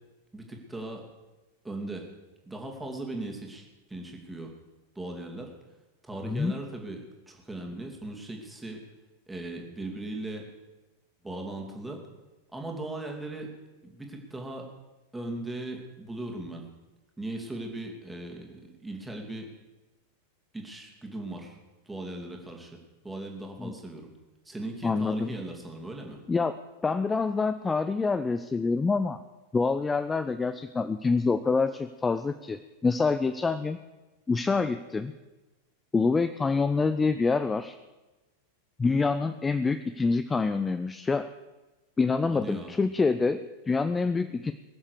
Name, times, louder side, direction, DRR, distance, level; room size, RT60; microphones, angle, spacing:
voice 1, 0.3-1.0 1.6-2.1 2.4-4.5 4.9-5.5 6.0-7.0 7.3-8.8 9.3-10.5 11.2-12.0 12.5-13.5 13.8-14.7 15.1-16.7 17.2-19.5 20.5-21.6 21.8-22.8 23.0-24.1 24.4-26.2 42.3-42.7, right 2 dB, 5° right, 2 dB, 2.6 m, -38 dB
voice 2, 24.8-25.3 26.3-26.5 26.8-29.2 29.5-33.8 34.3-35.1 35.9-37.8 38.8-41.3 42.0-44.5, left 4 dB, 15° left, 11 dB, 0.5 m, -26 dB
21.5 x 7.4 x 6.7 m, 1.1 s
figure-of-eight pair, 90°, 0 cm